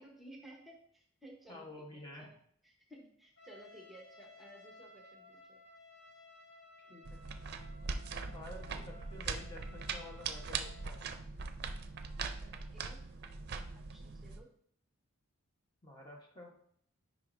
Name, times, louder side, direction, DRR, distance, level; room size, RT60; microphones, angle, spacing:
voice 1, 0.0-2.3 2.6-5.6 12.4-13.0 13.7-14.5, right 1 dB, ahead, -1 dB, 1.0 m, -56 dB
voice 2, 1.5-2.3 6.8-7.2 8.3-11.1 15.8-16.6, left 2 dB, 20° left, -1 dB, 1.0 m, -50 dB
Trumpet, 3.4-11.0, left 2 dB, 85° left, 2.4 m, -58 dB
sound 1, 7.0-14.4, right 4 dB, 50° right, 0.5 m, -41 dB
9.3 x 5.1 x 2.6 m, 0.64 s
head